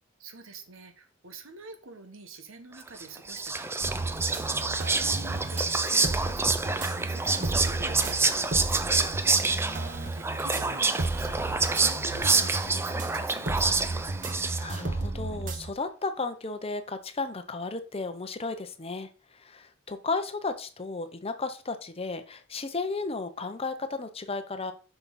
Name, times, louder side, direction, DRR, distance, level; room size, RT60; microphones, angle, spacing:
voice 1, 0.2-9.0 10.0-14.1, right 3 dB, 80° right, 7 dB, 1.4 m, -46 dB
Whispering, 3.0-14.9, right 3 dB, 10° right, 0.5 m, -27 dB
sound 1, 3.8-15.7, right 2 dB, 40° right, 0.9 m, -33 dB
voice 2, 9.4-10.1 14.6-24.7, left 3 dB, 30° left, 9 dB, 0.7 m, -34 dB
7.0 x 5.9 x 4.2 m, 0.36 s
head